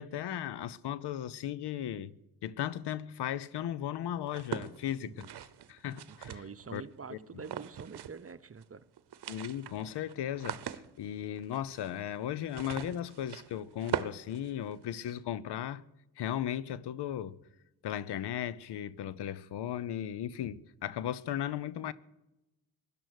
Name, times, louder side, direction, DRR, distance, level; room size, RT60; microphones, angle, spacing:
voice 1, 0.0-2.1 2.4-5.3 5.7-6.3 6.7-6.8 7.1-7.4 9.3-15.8 16.2-17.4 17.8-21.9, left 10 dB, 90° left, 0.7 m, -36 dB
sound 1, 4.3-6.8 7.4-8.3 8.6-8.7 9.0-15.1, right 10 dB, 80° right, 0.8 m, -41 dB
voice 2, 5.0-5.3 6.1-8.8, right 5 dB, 35° right, 0.9 m, -46 dB
17.0 x 10.5 x 6.5 m
cardioid pair, 55°, 39 cm